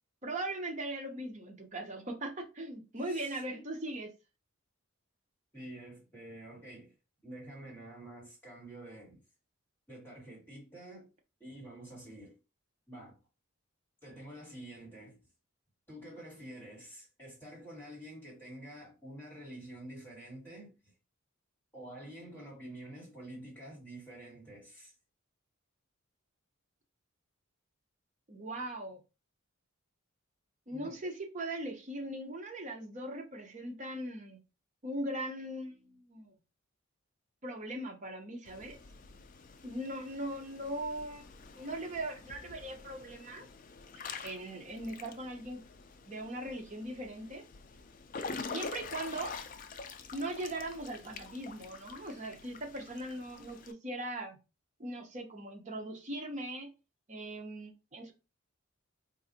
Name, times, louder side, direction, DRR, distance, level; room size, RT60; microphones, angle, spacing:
voice 1, 0.2-4.1 28.3-29.0 30.7-34.4 34.8-36.4 37.4-38.8 39.6-43.5 44.2-45.6 46.0-47.4 48.5-49.3 50.1-54.4 54.8-56.7 57.1-58.1, right 1 dB, 35° right, 0.7 m, -39 dB
voice 2, 3.0-3.7 5.5-6.9 7.2-9.2 9.9-11.1 11.4-12.4 12.9-13.2 14.0-15.2 15.9-20.9 21.7-24.9 30.7-31.0, right 1 dB, 10° left, 1.6 m, -48 dB
Water / Splash splatter / Drip, 38.4-53.7, left 4 dB, 40° left, 0.3 m, -46 dB
4.0 x 2.5 x 2.6 m
head